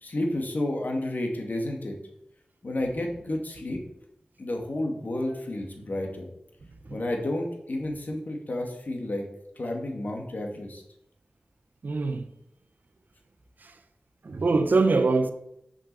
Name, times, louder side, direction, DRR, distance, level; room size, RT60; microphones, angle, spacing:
voice 1, 0.0-2.0 2.6-3.8 4.4-6.3 6.9-9.2 9.6-10.8, left 1 dB, 70° left, 2.2 m, -31 dB
voice 2, 11.8-12.3 13.6-13.7 14.2-15.3, right 3 dB, 90° right, 0.9 m, -23 dB
7.3 x 6.5 x 6.8 m
wide cardioid pair, 70°, 3 cm